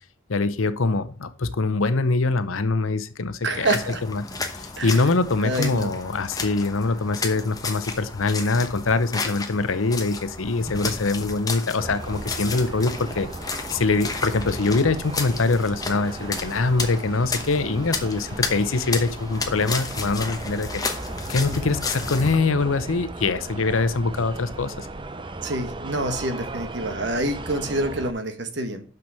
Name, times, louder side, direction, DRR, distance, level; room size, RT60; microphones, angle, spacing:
voice 1, 0.3-3.8 4.1-13.3 13.7-20.8 21.3-24.9, left 3 dB, 85° left, 0.8 m, -24 dB
voice 2, 3.4-4.0 4.8-5.0 5.4-5.9 21.4-21.7 25.4-28.8, right 1 dB, 60° right, 1.3 m, -27 dB
sound 1, 3.5-22.4, left 4 dB, 20° left, 1.0 m, -33 dB
sound 2, 11.8-28.1, right 2 dB, 25° right, 0.5 m, -37 dB
6.1 x 6.0 x 6.3 m
head